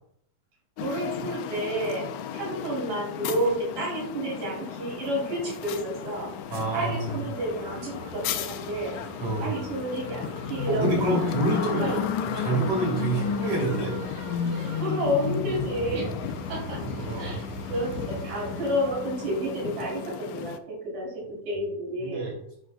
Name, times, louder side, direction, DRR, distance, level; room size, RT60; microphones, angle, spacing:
sound 1, 0.8-20.6, left 9 dB, 80° left, 2.0 m, -34 dB
voice 1, 0.8-2.1 2.3-6.3 6.7-9.0 9.4-11.2 11.5-12.4 13.1-13.3 14.7-16.1 16.5-16.8 17.2-22.3, right 1 dB, 65° right, -4 dB, 4.9 m, -30 dB
sound 2, 5.5-20.1, right 2 dB, 90° right, 4.3 m, -42 dB
voice 2, 6.5-7.2 9.2-9.5 10.7-11.9 12.4-14.0 15.9-16.1 17.0-17.4 22.0-22.3, right 2 dB, 45° right, -3 dB, 3.7 m, -27 dB
10.5 x 5.9 x 2.2 m, 0.70 s
omnidirectional pair, 3.8 m